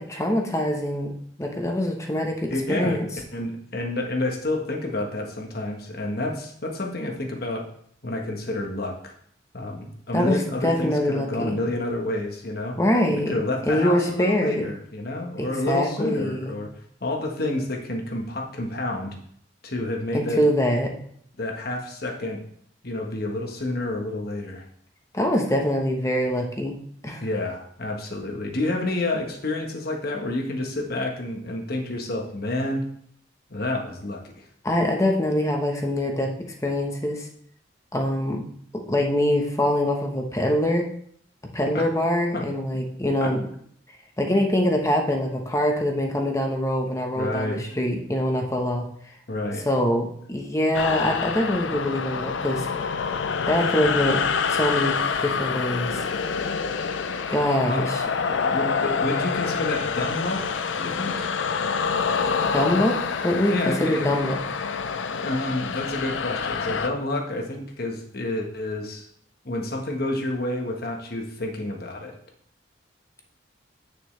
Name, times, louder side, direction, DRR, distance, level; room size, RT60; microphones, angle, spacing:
voice 1, 0.0-3.1 10.1-11.6 12.8-13.4 13.7-14.7 15.4-16.5 20.1-20.9 25.1-26.8 27.0-27.2 34.6-36.3 36.6-37.3 37.9-38.5 38.9-40.9 41.5-43.5 44.2-48.9 49.7-52.7 53.5-54.2 54.5-56.0 57.3-58.0 62.4-64.4, left 1 dB, 15° left, 2 dB, 1.0 m, -24 dB
voice 2, 2.5-3.0 3.3-7.7 8.0-9.1 9.5-12.8 13.3-16.7 17.0-19.1 19.6-20.4 21.4-22.4 22.8-24.6 27.2-32.8 33.5-34.4 41.7-41.8 42.3-42.5 43.2-43.3 47.1-47.6 49.3-49.7 57.7-57.9 58.3-61.3 63.5-64.1 65.1-69.1 69.4-72.1, left 2 dB, 55° left, 2 dB, 1.3 m, -29 dB
sound 1, 50.7-66.9, left 5 dB, 90° left, 0.5 m, -27 dB
8.7 x 6.6 x 3.3 m, 0.64 s
head